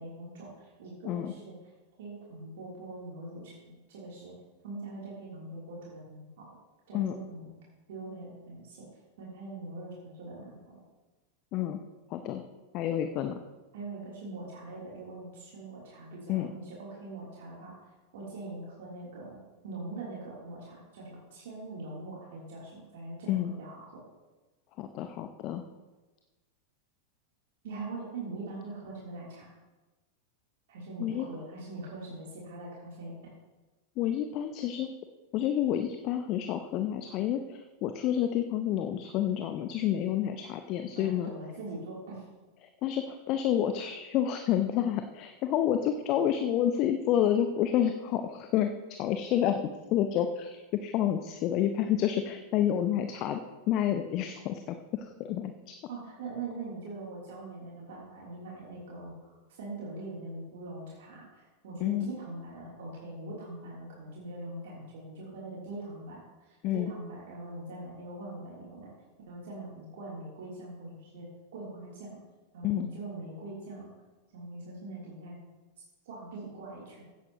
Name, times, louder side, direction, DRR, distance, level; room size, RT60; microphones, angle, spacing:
voice 1, 0.0-1.5 2.0-4.3 4.6-6.5 6.9-7.5 7.9-8.9 9.2-10.8 13.7-17.7 18.1-24.0 27.6-29.5 30.7-33.1 40.9-42.2 55.9-68.9 69.3-71.3 71.5-72.2 72.5-73.9 74.3-75.3 76.0-77.0, right 2 dB, 55° right, -6 dB, 3.1 m, -42 dB
voice 2, 12.1-12.4 12.7-13.4 16.3-16.5 23.3-23.5 24.8-25.7 31.0-31.3 34.0-34.9 35.3-41.3 42.6-48.7 49.0-49.6 49.9-53.4 53.7-55.8 61.8-62.1 66.6-66.9 72.6-72.9, left 10 dB, 40° left, 8 dB, 0.6 m, -29 dB
16.0 x 9.3 x 2.9 m, 1.2 s
figure-of-eight pair, 90°, 0 cm